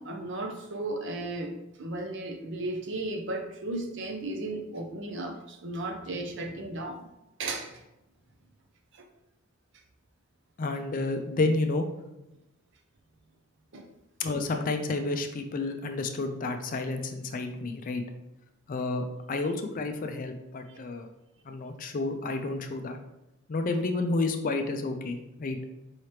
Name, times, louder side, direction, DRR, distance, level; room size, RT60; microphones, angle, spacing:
voice 1, 0.0-7.0 7.4-7.7 13.7-13.9, right 2 dB, 55° right, 4 dB, 0.6 m, -35 dB
voice 2, 10.6-11.9 14.2-18.0 18.7-21.1 21.5-23.0 23.5-25.6, left 3 dB, 40° left, 6 dB, 0.4 m, -30 dB
4.8 x 2.9 x 3.2 m, 0.93 s
head